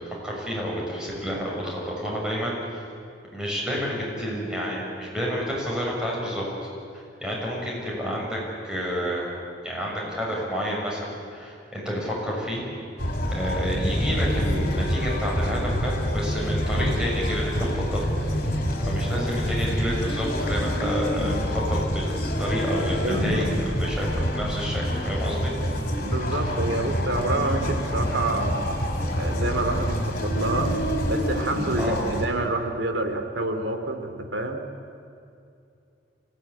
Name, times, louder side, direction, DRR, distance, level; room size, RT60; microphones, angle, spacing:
voice 1, 0.2-2.6 3.3-6.4 7.2-9.3 9.6-12.6 13.3-18.0 18.9-25.5 26.4-26.5 31.8-32.0, equal, 5° right, -4 dB, 6.6 m, -29 dB
sound 1, 13.0-32.3, equal, 55° left, 4.1 m, -27 dB
voice 2, 23.0-23.5 26.0-28.7 29.1-30.7 31.0-34.6, right 2 dB, 85° right, 6 dB, 2.8 m, -28 dB
25.0 x 17.0 x 10.0 m, 2.5 s
head